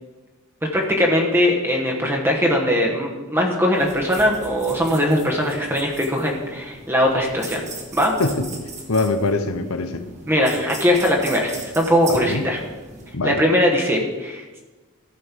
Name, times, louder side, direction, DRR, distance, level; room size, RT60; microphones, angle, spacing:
voice 1, 0.7-7.6 7.9-8.1 10.3-12.6 13.2-14.6, equal, 10° right, 0 dB, 1.2 m, -20 dB
sound 1, 3.7-13.1, right 3 dB, 35° right, 1.6 m, -39 dB
voice 2, 8.9-10.1 12.1-12.4 13.1-13.4, left 3 dB, 70° left, 10 dB, 0.8 m, -23 dB
14.0 x 5.4 x 5.8 m, 1.2 s
head